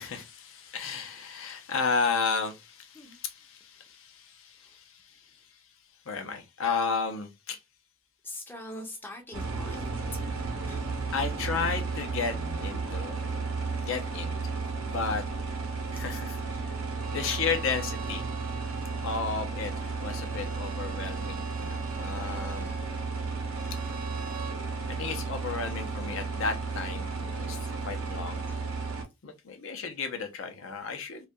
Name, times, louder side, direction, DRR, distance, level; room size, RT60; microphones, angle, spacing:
voice 1, 0.0-5.6 6.1-7.6 11.1-13.4 13.8-15.2 15.9-16.8 17.1-18.3 19.0-22.7 24.9-28.5 29.2-31.3, left 5 dB, 70° left, 0.5 m, -33 dB
voice 2, 8.2-9.9 10.7-11.1 13.7-13.9 16.5-16.7 18.3-18.4 28.5-28.6, left 1 dB, 10° left, 0.4 m, -44 dB
sound 1, 9.3-29.0, right 4 dB, 85° right, 0.7 m, -33 dB
Bowed string instrument, 17.0-24.6, right 6 dB, 40° right, 0.6 m, -46 dB
2.3 x 2.2 x 2.6 m
head